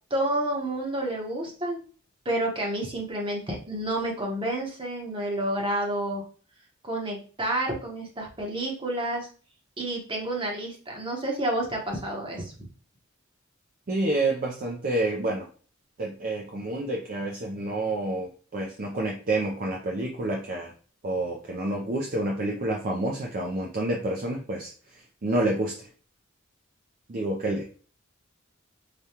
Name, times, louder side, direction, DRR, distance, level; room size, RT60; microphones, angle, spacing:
voice 1, 0.1-1.8 2.2-6.2 6.8-9.3 9.8-12.7, right 1 dB, 25° right, 0 dB, 0.9 m, -29 dB
voice 2, 13.9-15.5 16.0-20.7 21.0-24.7 25.2-25.7 27.1-27.7, right 2 dB, 40° right, -1 dB, 0.5 m, -28 dB
5.0 x 2.2 x 2.8 m, 0.41 s
head